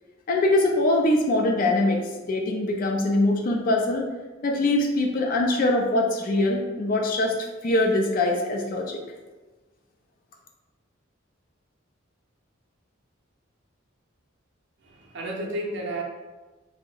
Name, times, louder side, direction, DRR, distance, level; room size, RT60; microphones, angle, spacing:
voice 1, 0.3-4.1 4.4-7.4 7.6-9.0, left 2 dB, 45° left, 1 dB, 0.3 m, -23 dB
voice 2, 14.8-16.0, right 1 dB, 60° right, -1 dB, 0.6 m, -32 dB
2.7 x 2.0 x 3.7 m, 1.2 s
head